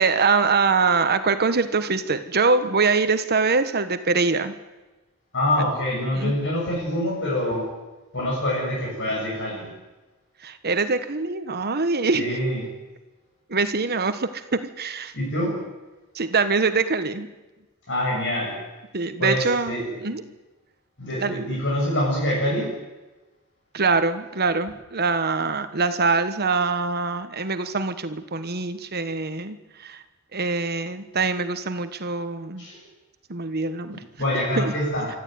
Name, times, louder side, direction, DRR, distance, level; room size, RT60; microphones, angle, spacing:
voice 1, 0.0-4.5 6.1-6.4 10.4-12.4 13.5-15.1 16.1-17.3 18.9-20.3 21.2-21.5 23.7-30.0 30.3-32.7 33.3-34.0 34.5-34.7, right 4 dB, 50° right, 10 dB, 1.2 m, -24 dB
voice 2, 5.3-7.7 8.1-9.7 12.1-12.6 15.1-15.5 17.9-18.5 19.2-19.8 21.0-22.7 32.6-32.8 33.9-35.1, left 1 dB, 60° left, -3 dB, 7.5 m, -25 dB
25.0 x 13.5 x 9.4 m, 1.1 s
head